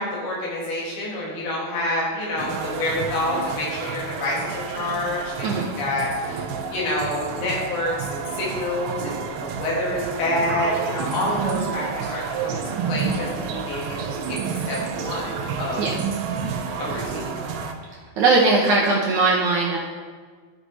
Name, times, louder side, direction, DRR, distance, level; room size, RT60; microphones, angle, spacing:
voice 1, 0.0-12.6 12.9-15.8 16.8-17.3, left 1 dB, 85° left, -4 dB, 4.0 m, -28 dB
sound 1, 2.4-17.7, right 6 dB, 85° right, 2.7 m, -30 dB
voice 2, 18.2-19.8, right 3 dB, 70° right, -3 dB, 1.9 m, -19 dB
13.5 x 4.9 x 4.1 m, 1.6 s
omnidirectional pair, 4.4 m